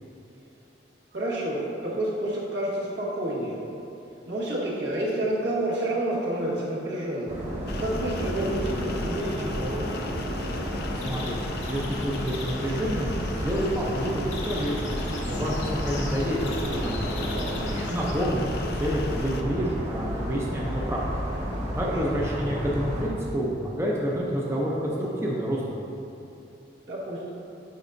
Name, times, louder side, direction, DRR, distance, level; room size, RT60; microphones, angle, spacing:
voice 1, 1.1-3.6 4.3-7.3 7.8-10.1 17.3-17.6 21.8-22.0 26.9-27.3, right 1 dB, 75° right, -6 dB, 1.5 m, -29 dB
sound 1, 7.3-23.1, equal, 35° right, 1.5 m, -32 dB
sound 2, 7.7-19.4, left 2 dB, 60° left, 0.5 m, -37 dB
sound 3, 10.5-18.1, left 3 dB, 80° left, 0.9 m, -42 dB
voice 2, 11.0-14.8 15.2-17.1 17.6-21.0 21.8-25.6, equal, 15° right, -4 dB, 0.5 m, -29 dB
8.2 x 5.3 x 2.6 m, 2.8 s
head